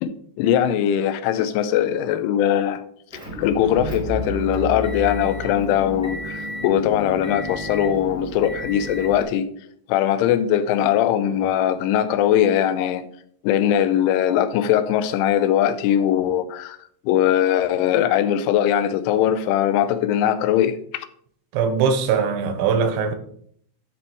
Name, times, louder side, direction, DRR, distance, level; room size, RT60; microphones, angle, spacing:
voice 1, 0.0-2.8 3.4-9.5 9.9-13.0 13.4-16.8 17.1-21.1, left 10 dB, 90° left, 3.2 m, -20 dB
Motor vehicle (road) / Engine, 3.1-9.2, right 1 dB, 5° right, 0.5 m, -32 dB
voice 2, 21.5-23.2, right 6 dB, 80° right, 3.2 m, -21 dB
13.0 x 4.4 x 4.5 m
omnidirectional pair, 5.4 m